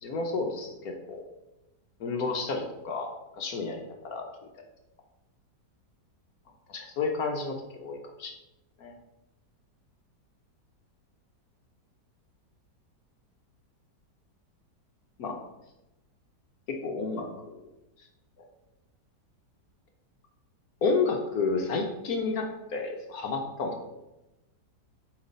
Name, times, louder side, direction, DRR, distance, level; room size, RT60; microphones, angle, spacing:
voice 1, 0.0-1.2 2.0-4.3 6.7-8.3 8.8-8.9 15.2-15.4 16.7-17.6 20.8-23.8, left 4 dB, 65° left, 3 dB, 1.1 m, -31 dB
7.4 x 3.3 x 5.1 m, 0.98 s
omnidirectional pair, 1.9 m